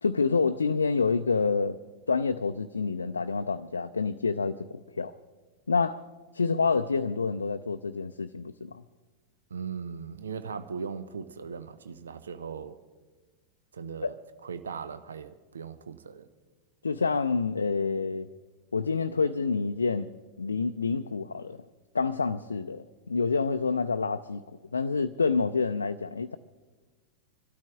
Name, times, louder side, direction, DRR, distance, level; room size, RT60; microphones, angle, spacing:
voice 1, 0.0-1.8 2.1-5.1 5.7-6.0 6.3-8.8 14.0-14.1 16.8-18.3 18.7-20.1 20.4-21.6 21.9-24.4 24.7-26.4, left 4 dB, 75° left, 0.4 m, -28 dB
voice 2, 9.5-12.8 13.7-14.1 14.4-16.3, right 6 dB, 70° right, 0.6 m, -38 dB
25.5 x 13.0 x 3.6 m
figure-of-eight pair, 90°, 0 cm